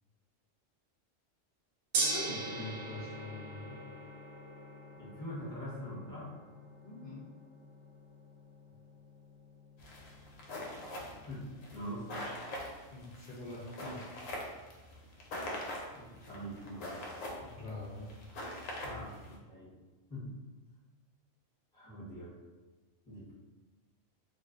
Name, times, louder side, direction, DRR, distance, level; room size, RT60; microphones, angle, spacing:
Gong, 1.9-12.1, right 3 dB, 65° right, 0.8 m, -42 dB
voice 1, 2.1-3.8 6.8-7.2 12.9-14.0 17.4-18.1, left 2 dB, 65° left, -7 dB, 0.4 m, -44 dB
voice 2, 4.9-6.3 11.3-12.3 15.9-17.0 18.8-19.7 20.1-20.3 21.7-22.4 23.1-23.3, equal, 5° left, -9 dB, 0.7 m, -43 dB
sound 1, 9.8-19.3, left 1 dB, 90° left, 1.0 m, -43 dB
2.5 x 2.2 x 2.4 m, 1.3 s
omnidirectional pair, 1.3 m